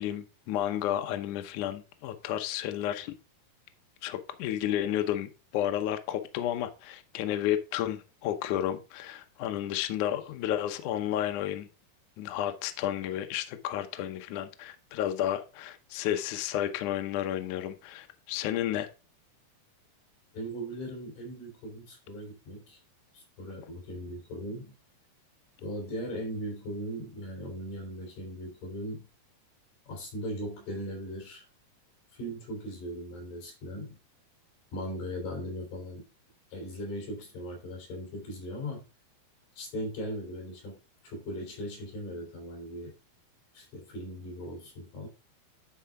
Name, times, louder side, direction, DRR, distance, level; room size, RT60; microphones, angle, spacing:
voice 1, 0.0-3.1 4.0-11.7 12.2-18.9, left 11 dB, 80° left, 1.8 m, -32 dB
voice 2, 20.3-22.8 23.1-24.8 25.6-29.1 29.9-31.5 32.1-34.0 34.7-36.1 36.5-38.8 39.6-40.8 41.0-42.9 43.5-45.1, equal, 60° left, 5.3 m, -38 dB
11.5 x 4.7 x 3.6 m
omnidirectional pair, 4.5 m